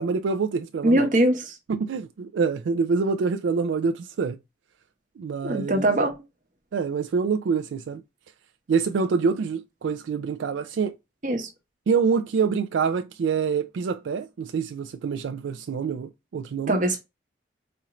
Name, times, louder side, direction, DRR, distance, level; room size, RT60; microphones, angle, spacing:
voice 1, 0.0-1.1 1.7-4.4 5.2-5.9 6.7-8.0 8.7-11.0 11.9-16.8, right 5 dB, 85° right, 0.3 m, -26 dB
voice 2, 0.8-1.5 5.4-6.2 11.2-11.5 16.7-17.0, right 1 dB, 45° right, 0.9 m, -22 dB
4.3 x 2.5 x 2.9 m
head